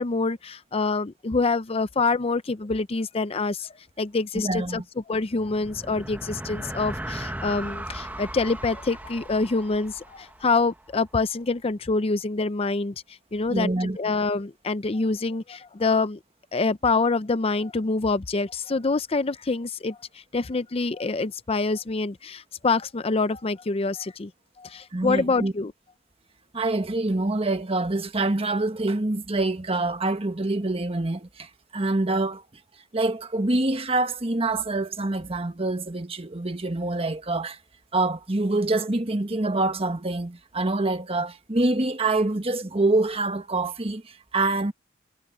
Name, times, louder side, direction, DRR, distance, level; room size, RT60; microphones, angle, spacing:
voice 1, 0.0-4.8 5.1-12.9 13.3-13.7 14.0-16.2 16.5-24.3 24.6-25.7, left 3 dB, 30° left, 0.5 m, -26 dB
voice 2, 4.3-4.8 13.5-14.0 24.9-25.5 26.5-32.4 32.9-37.6 37.9-44.7, right 2 dB, 30° right, 1.4 m, -26 dB
sound 1, 5.2-10.9, right 1 dB, 10° right, 1.2 m, -37 dB
head